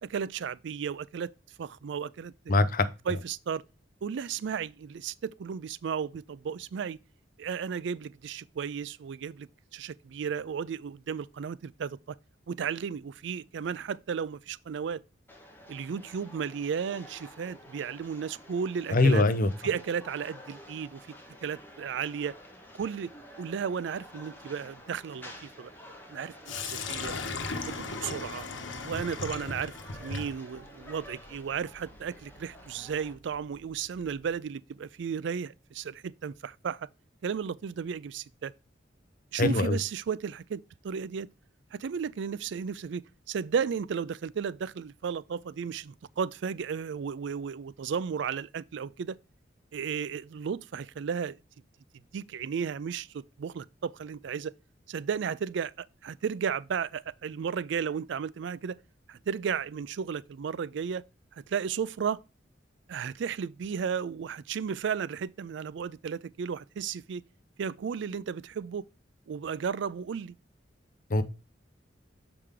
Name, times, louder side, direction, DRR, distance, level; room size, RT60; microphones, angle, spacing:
voice 1, 0.0-1.3 1.6-2.3 3.1-3.6 4.0-7.0 7.4-12.2 12.5-15.0 15.7-19.3 19.6-21.1 21.4-22.4 22.7-25.7 26.1-26.3 26.6-27.1 27.5-28.5 28.8-29.7 30.0-36.9 37.2-38.5 39.3-41.3 41.7-49.2 49.7-51.4 52.1-54.5 54.9-58.8 59.1-61.0 61.3-62.2 62.9-67.2 67.6-68.9 69.3-70.3, right 7 dB, 70° right, 0.4 m, -34 dB
voice 2, 2.5-2.9 18.9-19.5 39.4-39.8 71.1-71.2, left 2 dB, 50° left, 0.7 m, -22 dB
sound 1, 15.3-33.1, equal, 10° left, 1.4 m, -50 dB
Sink (filling or washing), 26.5-34.4, left 3 dB, 90° left, 1.1 m, -39 dB
6.8 x 4.9 x 3.6 m
head